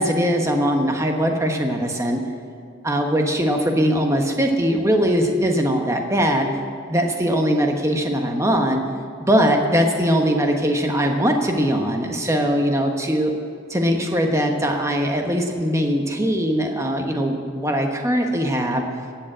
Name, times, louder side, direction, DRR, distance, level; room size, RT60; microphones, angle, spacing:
voice 1, 0.0-2.2 2.8-6.5 6.9-8.8 9.2-13.3 13.7-18.8, equal, 15° right, 3 dB, 1.2 m, -21 dB
18.0 x 7.3 x 8.1 m, 2.4 s
head